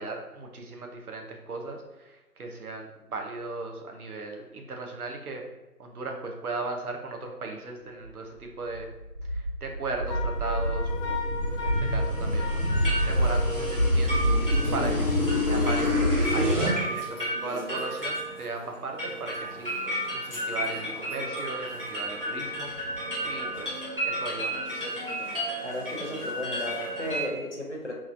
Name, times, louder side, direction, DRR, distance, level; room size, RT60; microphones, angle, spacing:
voice 1, 0.0-5.4 5.8-8.9 9.3-11.2 11.6-15.1 15.4-23.7 24.0-24.8, right 3 dB, 70° right, 2 dB, 0.7 m, -37 dB
sound 1, 8.7-16.8, equal, 55° right, 1.2 m, -26 dB
Wind instrument woodwind instrument, 10.1-14.0, left 4 dB, 90° left, 0.7 m, -37 dB
sound 2, 12.7-27.2, right 1 dB, 35° right, 0.8 m, -33 dB
voice 2, 25.6-27.9, left 1 dB, 50° left, -1 dB, 0.5 m, -34 dB
3.0 x 2.4 x 2.5 m, 1.0 s
figure-of-eight pair, 180°, 46 cm